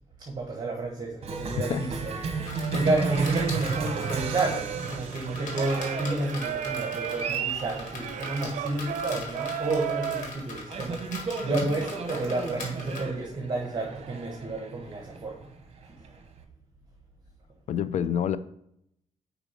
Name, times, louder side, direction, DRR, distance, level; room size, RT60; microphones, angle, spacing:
voice 1, 0.2-15.5 15.8-15.9, right 2 dB, 35° right, 0 dB, 1.4 m, -31 dB
Cheering, 1.2-16.4, right 5 dB, 50° right, 1.0 m, -35 dB
sound 1, 2.4-13.0, left 3 dB, 80° left, 1.7 m, -41 dB
Singing, 3.0-10.3, right 9 dB, 75° right, 0.5 m, -35 dB
voice 2, 17.7-18.4, left 9 dB, 65° left, 15 dB, 0.4 m, -27 dB
5.0 x 4.9 x 5.1 m, 0.76 s
cardioid pair, 85°, 13 cm